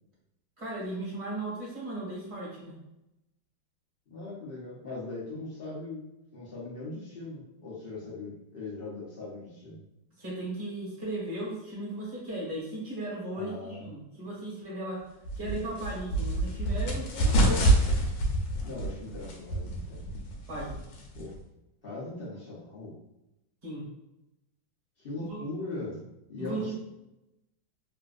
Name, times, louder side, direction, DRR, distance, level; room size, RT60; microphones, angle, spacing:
voice 1, 0.6-2.8 10.2-15.1 15.4-17.7 20.5-20.8 23.6-23.8 25.3-25.4 26.4-26.7, right 1 dB, 35° right, -6 dB, 1.4 m, -36 dB
voice 2, 4.1-9.8 13.3-13.9 18.6-20.0 21.1-21.3 21.8-22.9 25.0-26.7, left 2 dB, 55° left, -7 dB, 0.6 m, -40 dB
sound 1, 15.2-21.4, right 1 dB, 80° left, 1.5 m, -27 dB
3.5 x 2.5 x 2.4 m, 0.91 s
omnidirectional pair, 2.2 m